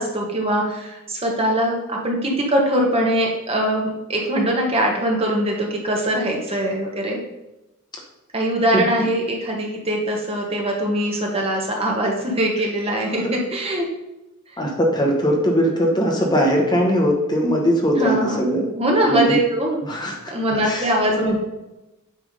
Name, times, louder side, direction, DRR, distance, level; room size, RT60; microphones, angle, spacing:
voice 1, 0.0-7.2 8.3-13.9 18.0-18.4 18.8-19.8 20.3-21.4, right 1 dB, 30° right, 0 dB, 1.4 m, -22 dB
voice 2, 14.6-18.7 19.1-19.4 19.8-20.3 20.6-20.9 21.2-21.3, equal, 20° left, 0 dB, 1.1 m, -20 dB
8.4 x 3.5 x 5.2 m, 0.97 s
head